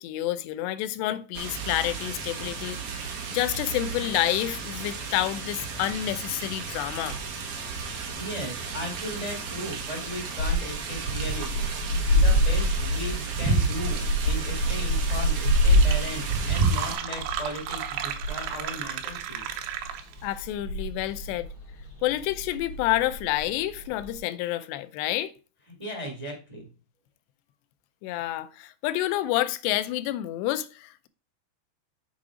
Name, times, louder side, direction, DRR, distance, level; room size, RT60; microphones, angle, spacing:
voice 1, 0.0-3.0 3.3-7.2 20.2-21.5 22.0-25.3 28.0-31.1, left 14 dB, 85° left, 2.7 m, -29 dB
sound 1, 1.3-16.9, right 4 dB, 60° right, 2.4 m, -32 dB
voice 2, 8.2-19.5 25.8-26.7, left 1 dB, 30° right, 0.5 m, -37 dB
sound 2, 10.4-24.2, equal, 45° left, 3.9 m, -27 dB
Fill (with liquid), 15.2-15.3 15.5-20.3, right 9 dB, 90° right, 3.1 m, -34 dB
7.3 x 4.8 x 4.9 m
omnidirectional pair, 4.8 m